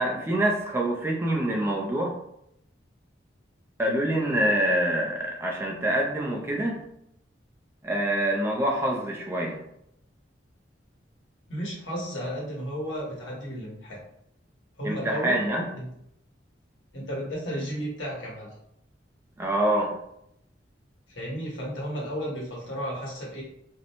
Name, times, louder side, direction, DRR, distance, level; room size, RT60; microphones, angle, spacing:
voice 1, 0.0-2.2 3.8-6.9 7.8-9.6 14.8-15.7 19.4-20.0, right 1 dB, 15° right, -1 dB, 0.3 m, -26 dB
voice 2, 11.5-14.0 14.8-15.4 15.8-15.9 16.9-18.5 21.1-23.4, equal, 80° left, -5 dB, 1.1 m, -33 dB
2.5 x 2.1 x 2.8 m, 0.77 s
head